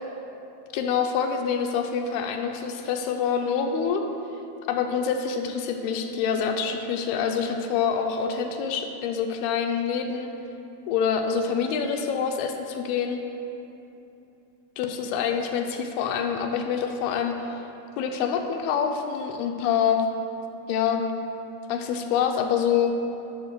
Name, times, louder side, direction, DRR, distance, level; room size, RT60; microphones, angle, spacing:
voice 1, 0.7-4.0 4.7-10.3 10.9-13.2 14.8-17.6 18.0-20.0 20.7-21.0 21.7-22.9, left 7 dB, 80° left, 4 dB, 2.4 m, -26 dB
11.5 x 4.1 x 6.6 m, 2.8 s
omnidirectional pair, 4.5 m